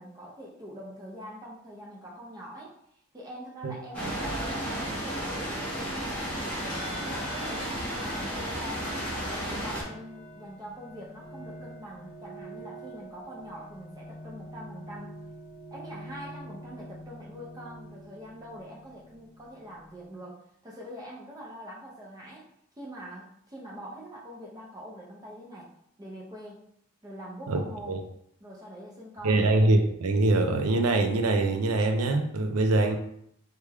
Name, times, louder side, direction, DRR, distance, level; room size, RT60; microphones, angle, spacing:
voice 1, 0.0-8.9 9.2-15.1 15.7-22.5 22.8-25.7 26.0-26.6 27.0-28.0 28.4-29.5, equal, 15° right, -4 dB, 0.5 m, -44 dB
sound 1, 3.9-9.8, equal, 5° left, 0.9 m, -33 dB
sound 2, 6.7-20.2, equal, 45° left, 1.1 m, -46 dB
voice 2, 29.2-33.0, right 2 dB, 90° right, 5 dB, 0.5 m, -23 dB
3.1 x 2.2 x 3.4 m, 0.71 s
head